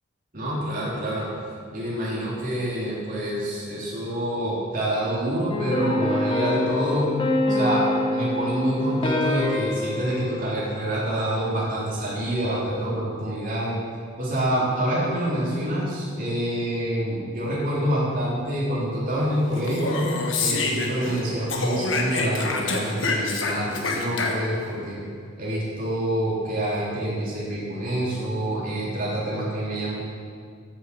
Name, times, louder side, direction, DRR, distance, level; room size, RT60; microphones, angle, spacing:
voice 1, 0.3-1.3 1.7-7.1 7.5-13.8 14.2-20.0 20.4-25.0 25.4-29.9, right 1 dB, 45° right, -6 dB, 3.2 m, -26 dB
sound 1, 5.5-11.1, left 2 dB, 25° left, 0.8 m, -26 dB
Speech, 19.6-21.2 21.5-24.7, left 3 dB, 75° left, 1.3 m, -27 dB
9.3 x 6.6 x 7.9 m, 2.1 s
head